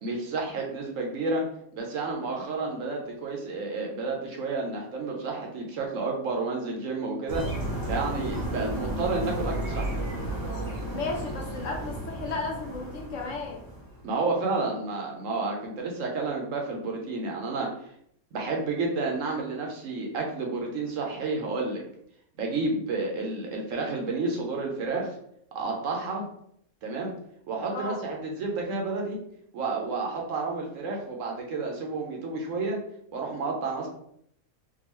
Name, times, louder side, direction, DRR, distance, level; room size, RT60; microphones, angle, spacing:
voice 1, 0.0-1.4 1.7-7.4 7.9-10.0 14.0-17.7 18.3-21.8 22.4-25.1 25.5-26.2 26.8-27.1 27.5-29.2 29.5-32.8 33.1-33.9, right 3 dB, 65° right, 0 dB, 1.0 m, -30 dB
sound 1, 7.3-14.1, right 1 dB, 35° right, 0.3 m, -33 dB
voice 2, 10.8-13.6 27.7-28.0, left 3 dB, 65° left, -1 dB, 1.0 m, -34 dB
3.7 x 2.3 x 3.0 m, 0.70 s
omnidirectional pair, 1.5 m